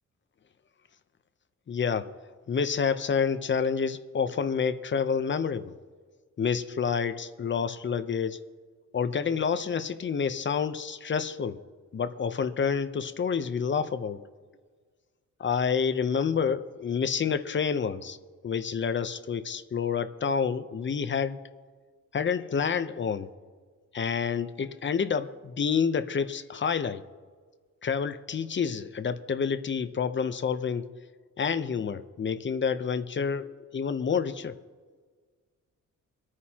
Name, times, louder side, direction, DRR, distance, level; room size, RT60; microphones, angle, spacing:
voice 1, 1.7-2.1 2.5-5.7 6.4-8.4 8.9-11.6 11.9-14.2 15.4-18.2 18.4-21.4 22.1-23.3 23.9-27.0 27.8-30.9 31.4-34.5, left 6 dB, 40° left, 11 dB, 0.8 m, -28 dB
24.5 x 9.4 x 2.9 m, 1.5 s
cardioid pair, 105°, 30 cm